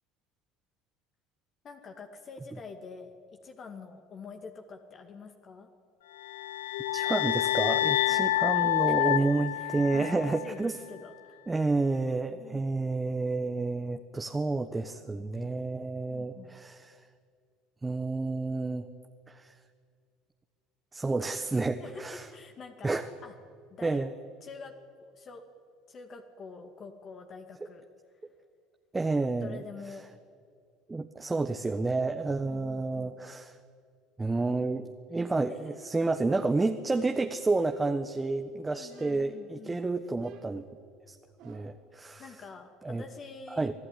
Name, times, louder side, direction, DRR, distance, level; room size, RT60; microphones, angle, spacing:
voice 1, 1.6-3.1 3.4-5.7 8.1-8.3 9.0-11.4 12.4-12.6 16.1-16.5 21.8-23.3 23.7-24.0 24.4-25.4 25.9-27.9 29.4-30.0 32.4-33.1 35.5-35.7 38.7-39.8 42.2-43.7, left 4 dB, 40° left, 4 dB, 2.2 m, -46 dB
sound 1, 6.2-10.5, left 15 dB, 85° left, 0.5 m, -28 dB
voice 2, 6.9-10.8 11.5-17.0 17.8-18.9 19.3-19.5 20.9-22.3 22.8-23.1 23.8-24.1 28.9-29.6 30.9-33.6 34.2-40.7 41.1-41.2 41.4-42.3 42.8-43.0 43.5-43.7, right 3 dB, 15° right, 6 dB, 1.3 m, -30 dB
sound 2, 37.6-38.5 38.9-39.5 40.2-41.9, right 6 dB, 65° right, 3.0 m, -54 dB
26.5 x 16.0 x 9.9 m, 2.4 s
hypercardioid pair, 75°, 0 cm